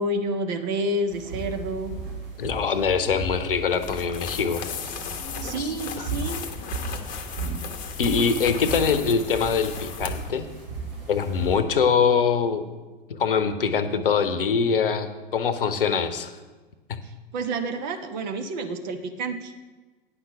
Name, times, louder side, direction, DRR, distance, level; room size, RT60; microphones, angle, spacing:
voice 1, 0.0-1.9 5.4-6.4 17.3-19.5, right 1 dB, 50° right, 6 dB, 1.1 m, -29 dB
sound 1, 1.1-11.6, right 3 dB, 65° right, 2.9 m, -36 dB
voice 2, 2.4-4.6 5.6-6.1 8.0-10.5 11.1-12.7 13.1-16.3 16.9-17.0, left 6 dB, 65° left, 10 dB, 0.9 m, -23 dB
sound 2, 3.7-10.3, left 6 dB, 30° left, 1.0 m, -35 dB
9.8 x 5.9 x 5.9 m, 1.3 s
figure-of-eight pair, 90°, 29 cm